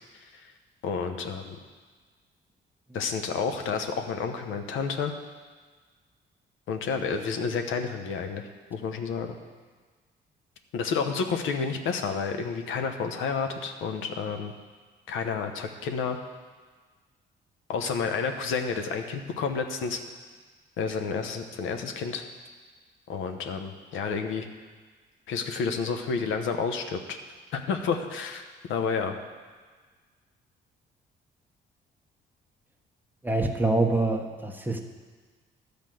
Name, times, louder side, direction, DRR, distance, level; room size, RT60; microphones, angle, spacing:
voice 1, 0.8-1.6 2.9-5.1 6.7-9.4 10.7-14.5 15.1-16.2 17.7-20.0 20.8-22.2 23.1-24.5 25.3-27.2 27.5-28.4 28.7-29.2, left 5 dB, 85° left, 6 dB, 0.9 m, -30 dB
voice 2, 33.2-34.8, right 2 dB, 10° right, 2 dB, 1.1 m, -25 dB
11.0 x 5.1 x 7.7 m, 1.5 s
cardioid pair, 90°, 20 cm